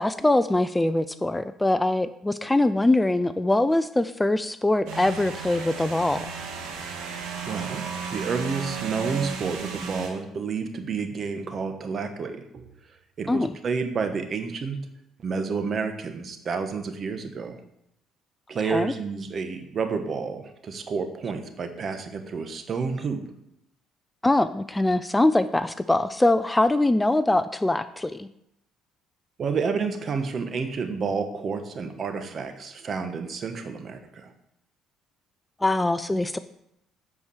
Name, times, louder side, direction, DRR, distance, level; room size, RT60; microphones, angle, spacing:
voice 1, 0.0-6.3 13.3-13.5 18.6-18.9 24.2-28.3 35.6-36.4, left 2 dB, 10° left, 13 dB, 0.4 m, -23 dB
sound 1, 4.9-10.1, right 6 dB, 80° right, 1.6 m, -34 dB
voice 2, 7.5-12.7 13.2-14.9 15.2-17.6 18.5-23.2 29.4-34.3, right 5 dB, 45° right, 7 dB, 1.2 m, -30 dB
8.5 x 4.7 x 6.3 m, 0.78 s
supercardioid pair, 80°, 0 cm